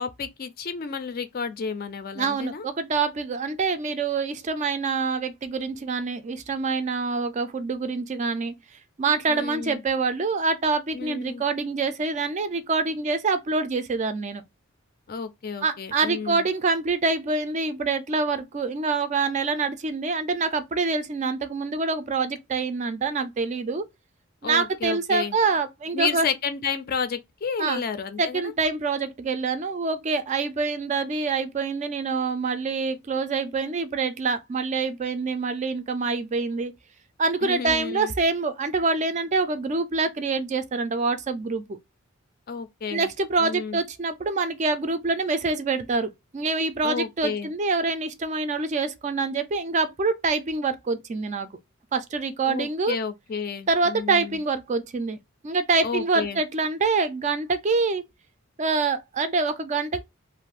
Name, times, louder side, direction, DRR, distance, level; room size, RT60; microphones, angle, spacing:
voice 1, 0.0-2.7 9.3-9.8 10.9-11.4 15.1-16.5 24.4-25.4 25.9-28.5 37.4-38.1 42.5-43.1 43.4-43.8 46.8-47.5 52.4-54.4 55.8-56.4, left 6 dB, 45° left, 0.4 m, -31 dB
voice 2, 2.2-8.5 9.0-14.4 15.6-23.8 24.4-26.3 27.6-27.8 28.2-36.7 37.2-41.8 42.9-51.5 51.9-53.0 53.7-55.2 55.4-58.0 58.6-60.0, right 4 dB, 35° right, 0.3 m, -26 dB
2.5 x 2.4 x 3.3 m
head